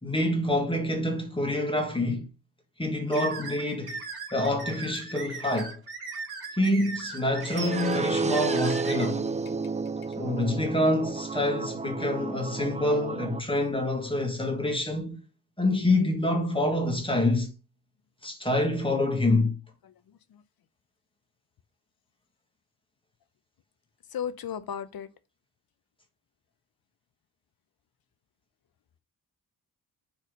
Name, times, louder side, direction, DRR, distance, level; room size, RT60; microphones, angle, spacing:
voice 1, 0.0-2.3 2.8-4.0 4.3-5.8 6.6-9.3 10.2-15.2 15.6-17.5 18.2-19.5, left 1 dB, 10° left, 1.7 m, -26 dB
sound 1, 3.1-9.0, right 4 dB, 65° right, 2.1 m, -38 dB
sound 2, 7.4-13.4, right 4 dB, 20° right, 0.4 m, -31 dB
voice 2, 19.9-20.4 24.1-25.1, left 8 dB, 55° left, 0.8 m, -36 dB
4.8 x 4.3 x 5.0 m
cardioid pair, 100°, 42 cm